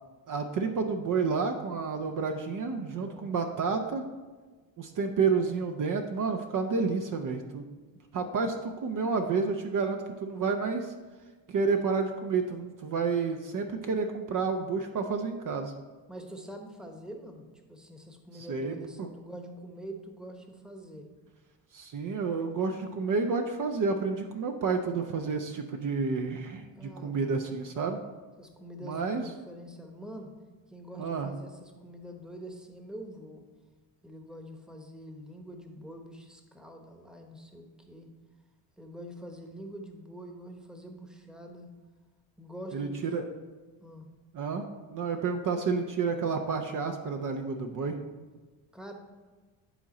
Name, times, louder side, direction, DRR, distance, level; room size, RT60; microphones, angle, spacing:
voice 1, 0.3-4.0 4.8-7.6 8.1-10.9 11.5-15.7 18.5-19.1 21.7-28.0 28.8-29.2 31.0-31.3 42.7-43.2 44.3-48.0, right 4 dB, 45° right, 4 dB, 0.7 m, -30 dB
voice 2, 3.0-3.3 16.1-21.1 26.8-27.4 28.4-30.3 30.7-33.4 34.0-38.1 38.8-41.7 42.4-43.1 43.8-44.1 48.7-48.9, equal, ahead, 4 dB, 1.0 m, -45 dB
10.0 x 3.7 x 4.1 m, 1.3 s
supercardioid pair, 75°, 45 cm